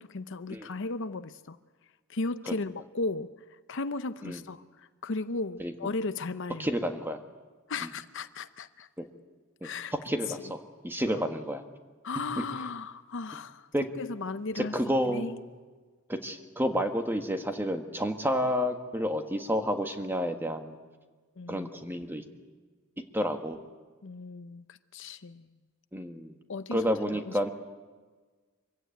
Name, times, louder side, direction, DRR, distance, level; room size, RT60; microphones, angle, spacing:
voice 1, 0.0-1.6 2.1-3.3 3.7-6.7 7.7-8.9 9.6-9.9 11.1-11.3 12.0-13.7 14.0-14.8 15.1-15.4 21.4-21.7 24.0-25.5 26.5-26.9 27.3-27.4, left 3 dB, 65° left, 12 dB, 0.7 m, -35 dB
voice 2, 6.6-7.2 9.0-9.1 9.6-9.7 10.0-11.6 13.7-13.8 14.6-15.4 16.1-20.8 21.5-22.2 23.1-23.6 25.9-26.3 26.7-27.5, equal, 10° right, 5 dB, 1.5 m, -30 dB
24.5 x 16.0 x 9.2 m, 1.4 s
head